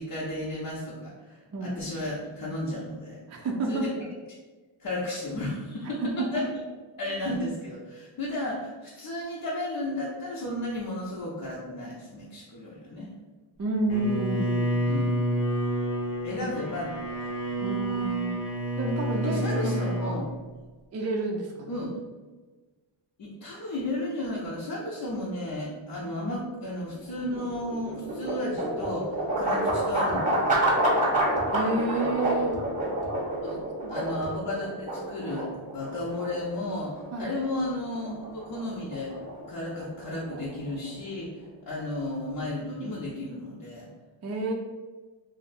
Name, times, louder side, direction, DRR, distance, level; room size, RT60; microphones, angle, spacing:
voice 1, 0.0-3.2 3.7-3.9 4.8-6.5 7.0-13.1 14.9-15.1 16.2-17.0 19.1-20.2 21.7-21.9 23.2-30.6 33.4-33.6 33.9-39.1 39.5-43.9, left 1 dB, 50° left, -6 dB, 0.7 m, -33 dB
voice 2, 1.5-1.8 3.3-3.9 6.0-6.4 13.6-14.9 16.3-16.5 17.6-18.4 18.8-20.2 20.9-21.8 26.0-26.2 31.5-32.5 33.8-34.0 37.1-37.3 44.2-44.5, right 2 dB, 35° right, 0 dB, 0.4 m, -30 dB
Bowed string instrument, 13.9-20.2, right 1 dB, 75° left, 1.0 m, -29 dB
sound 1, 27.0-41.1, right 1 dB, 15° right, 0.9 m, -29 dB
sound 2, 28.8-29.0 29.7-30.2 31.4-31.5 32.5-32.7 33.0-33.2 34.2-34.4, right 1 dB, 15° left, 0.8 m, -42 dB
2.6 x 2.1 x 4.0 m, 1.3 s
cardioid pair, 110°, 46 cm